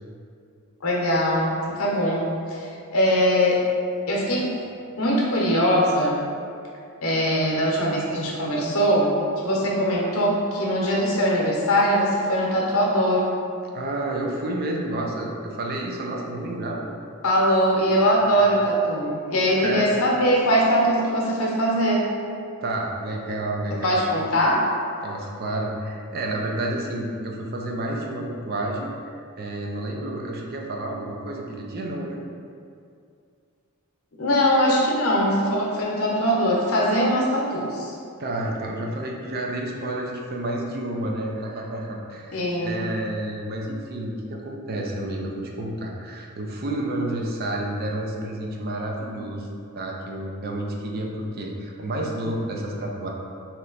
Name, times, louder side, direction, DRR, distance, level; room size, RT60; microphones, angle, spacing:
voice 1, 0.8-2.2 2.5-3.6 4.1-4.5 5.0-6.2 7.0-9.1 9.4-13.3 17.2-22.1 23.8-24.6 34.2-37.9 42.3-42.8, equal, 70° left, -3 dB, 0.8 m, -21 dB
voice 2, 13.7-16.9 18.3-18.5 19.6-20.0 22.6-24.3 25.0-32.2 38.2-53.1, right 1 dB, 45° right, 0 dB, 0.5 m, -30 dB
3.2 x 2.9 x 3.8 m, 2.4 s
head